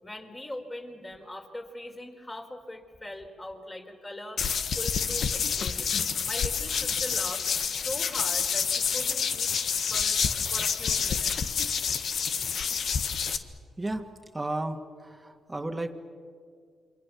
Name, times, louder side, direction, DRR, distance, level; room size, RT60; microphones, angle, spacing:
voice 1, 0.0-6.0 6.2-7.4 7.7-9.5 9.9-10.2 10.5-11.5, left 1 dB, 25° left, 3 dB, 4.6 m, -41 dB
sound 1, 4.4-13.4, left 6 dB, 65° left, 1.4 m, -28 dB
voice 2, 14.3-14.8 15.0-16.0, right 2 dB, 20° right, 4 dB, 1.9 m, -33 dB
28.0 x 24.0 x 7.1 m, 2.2 s
hypercardioid pair, 45°, 0 cm